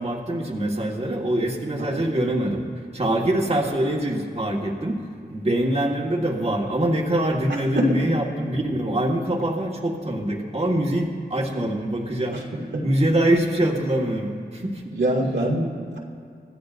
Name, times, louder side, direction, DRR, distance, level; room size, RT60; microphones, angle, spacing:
voice 1, 0.0-2.6 2.9-5.0 5.3-12.4 12.8-14.9, right 1 dB, 35° right, -1 dB, 1.6 m, -24 dB
voice 2, 1.8-2.1 7.7-8.1 12.3-12.4 12.7-12.9 14.9-16.0, right 1 dB, 85° right, -3 dB, 2.1 m, -24 dB
24.5 x 13.5 x 2.6 m, 2.3 s
wide cardioid pair, 70°, 18 cm